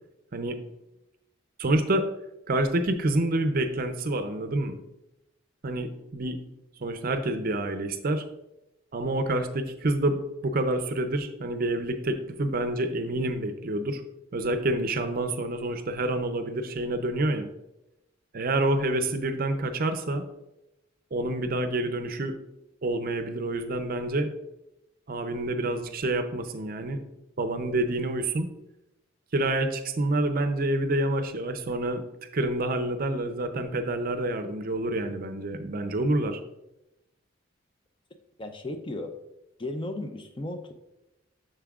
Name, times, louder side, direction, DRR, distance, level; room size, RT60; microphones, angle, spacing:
voice 1, 1.6-2.1 2.5-4.8 5.6-6.5 6.8-8.2 8.9-14.0 14.3-17.5 18.3-20.2 21.1-22.3 22.8-24.3 25.1-27.0 27.4-28.5 29.3-32.0 32.3-36.4, right 1 dB, 50° right, 9 dB, 0.5 m, -28 dB
voice 2, 38.4-39.1 39.6-40.7, left 1 dB, 25° left, 7 dB, 0.5 m, -35 dB
7.2 x 6.7 x 2.4 m, 0.91 s
head